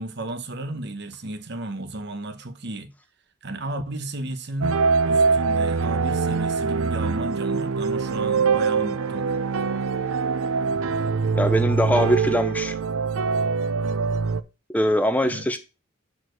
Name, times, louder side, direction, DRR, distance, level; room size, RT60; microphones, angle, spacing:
voice 1, 0.0-2.9 3.4-4.8 5.1-9.3 15.2-15.5, right 1 dB, 55° right, 1.0 m, -33 dB
sound 1, 4.6-14.4, right 5 dB, 85° right, 0.6 m, -23 dB
voice 2, 11.3-12.8 14.7-15.6, equal, 5° left, 0.5 m, -22 dB
6.9 x 4.2 x 6.4 m
head